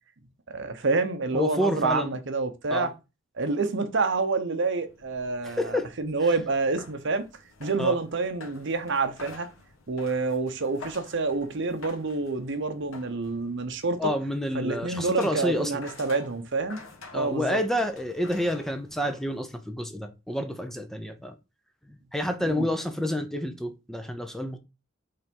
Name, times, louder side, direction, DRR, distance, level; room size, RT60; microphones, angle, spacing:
voice 1, 0.5-2.9 3.4-7.2 7.6-9.5 9.9-14.1 14.5-16.8 17.1-17.6 22.4-22.7, right 3 dB, 60° right, 0.9 m, -28 dB
voice 2, 1.3-2.1 2.7-2.9 5.4-5.9 7.8-8.0 14.0-15.8 17.1-21.3 21.9-24.6, left 1 dB, ahead, 0.6 m, -29 dB
sound 1, 4.8-19.7, left 3 dB, 85° left, 1.5 m, -49 dB
5.5 x 3.4 x 5.2 m
head